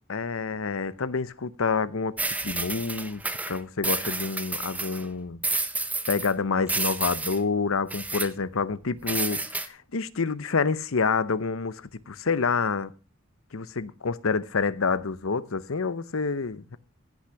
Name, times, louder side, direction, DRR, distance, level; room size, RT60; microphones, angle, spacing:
voice 1, 0.1-2.2 2.4-5.4 6.1-12.9 13.5-16.8, left 4 dB, 85° left, 0.8 m, -28 dB
sound 1, 2.2-5.0 5.4-6.3 6.7-7.4 7.9-8.3 9.1-9.7, right 3 dB, 5° right, 0.7 m, -30 dB
16.0 x 6.2 x 5.8 m
head